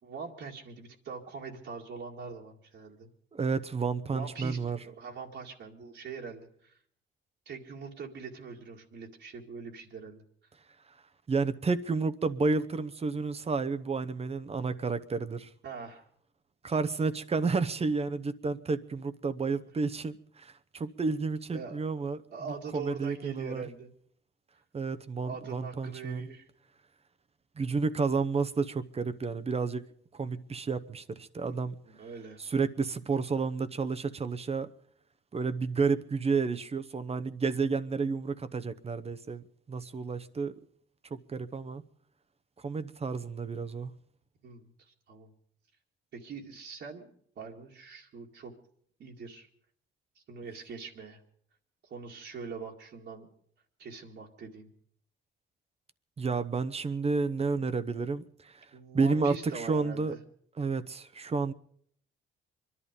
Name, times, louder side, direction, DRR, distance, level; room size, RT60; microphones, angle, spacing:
voice 1, 0.0-3.1 4.1-6.8 7.5-10.2 14.6-14.7 15.6-16.1 21.5-21.8 22.3-23.9 25.2-26.5 31.4-32.4 44.4-45.3 46.1-47.1 47.4-48.5 49.0-49.5 50.2-51.2 51.8-53.3 53.8-54.7 58.7-60.2, right 5 dB, 65° right, 2.1 m, -43 dB
voice 2, 3.3-4.8 11.3-15.5 16.6-22.2 22.7-23.6 24.7-26.3 27.6-29.9 30.1-31.8 32.4-34.7 35.3-40.5 41.1-41.8 42.6-43.9 56.2-58.7 58.9-60.1 60.6-61.5, right 4 dB, 30° right, 0.9 m, -31 dB
24.0 x 11.0 x 5.2 m
cardioid pair, 90°, 20 cm